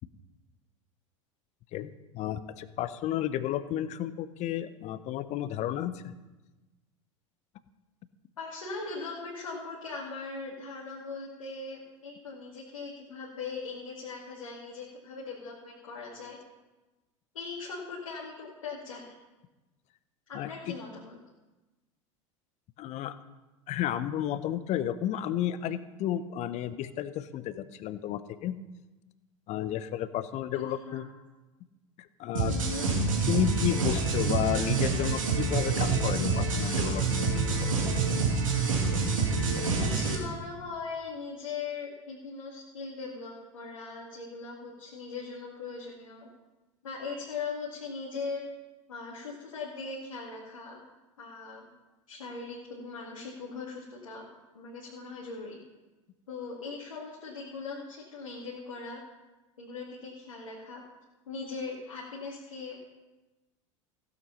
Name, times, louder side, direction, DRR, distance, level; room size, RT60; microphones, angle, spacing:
voice 1, 1.7-6.1 20.3-20.8 22.8-23.2 23.7-28.6 29.5-31.1 32.0-32.5 33.3-37.3, left 11 dB, 45° left, 14 dB, 0.8 m, -32 dB
voice 2, 8.4-16.4 17.3-19.0 20.3-21.2 30.5-31.1 32.4-32.9 39.6-46.3 46.8-48.4 48.9-50.8 51.2-51.7 52.1-54.3 54.5-55.6 56.3-59.0 59.6-60.8 61.3-62.8, left 4 dB, 75° left, -4 dB, 2.3 m, -40 dB
sound 1, 32.4-40.2, right 4 dB, 80° right, 2.6 m, -27 dB
15.5 x 8.1 x 5.6 m, 1.1 s
figure-of-eight pair, 80°, 17 cm